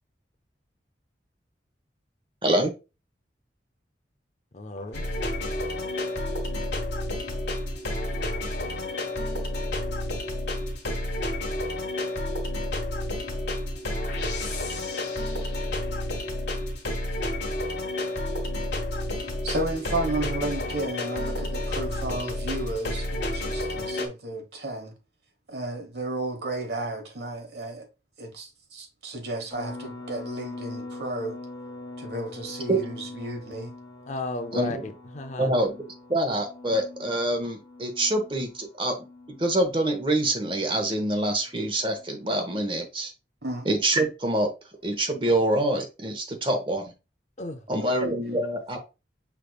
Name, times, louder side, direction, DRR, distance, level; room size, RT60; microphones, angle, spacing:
voice 1, 2.4-2.7 32.7-32.8 34.5-34.8 35.4-35.8 36.1-39.0 39.4-43.1 43.6-44.5 44.8-46.9 47.7-48.8, right 1 dB, 30° right, 0.9 m, -25 dB
voice 2, 4.5-5.0 34.1-35.5 47.4-47.7, left 2 dB, 40° left, 0.5 m, -34 dB
sound 1, 4.9-24.1, left 1 dB, 80° left, 1.3 m, -30 dB
voice 3, 19.0-24.9 25.5-27.9 28.2-31.4 32.0-33.7 43.4-43.7, right 2 dB, 65° right, 1.2 m, -33 dB
sound 2, 29.5-42.4, left 2 dB, 25° left, 0.9 m, -43 dB
6.2 x 3.4 x 2.3 m
head